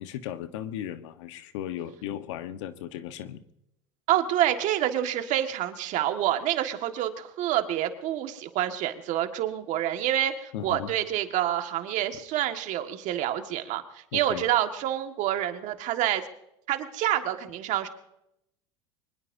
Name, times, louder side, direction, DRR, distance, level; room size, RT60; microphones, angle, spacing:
voice 1, 0.0-3.4 10.5-10.9 14.1-14.4, left 11 dB, 75° left, 10 dB, 1.2 m, -36 dB
voice 2, 4.1-16.2 16.7-17.9, right 12 dB, 55° right, 6 dB, 1.7 m, -27 dB
24.0 x 20.5 x 2.7 m, 0.80 s
supercardioid pair, 105°, 15 cm